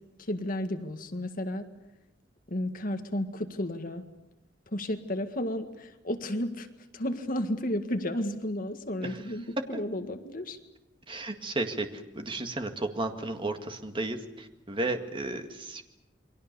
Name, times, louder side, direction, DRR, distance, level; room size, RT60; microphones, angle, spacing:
voice 1, 0.2-1.7 2.5-4.1 4.7-6.7 6.9-10.6, left 1 dB, 50° left, 7 dB, 1.8 m, -32 dB
voice 2, 11.1-15.8, right 2 dB, 30° right, 6 dB, 2.0 m, -33 dB
29.0 x 23.0 x 6.9 m, 0.94 s
head